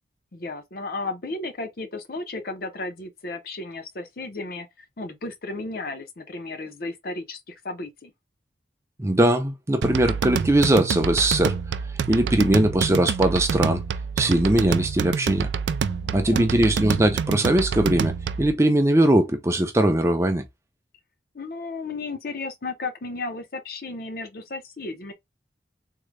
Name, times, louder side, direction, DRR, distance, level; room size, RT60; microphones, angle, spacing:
voice 1, 0.3-8.1 12.3-12.6 15.8-16.5 21.3-25.1, left 3 dB, 55° left, 0.7 m, -34 dB
voice 2, 9.0-11.6 12.1-13.8 14.2-15.5 16.1-18.1 18.4-20.4, right 1 dB, 15° right, 0.5 m, -20 dB
sound 1, 9.8-18.5, right 6 dB, 80° right, 0.3 m, -27 dB
3.7 x 2.1 x 3.2 m
head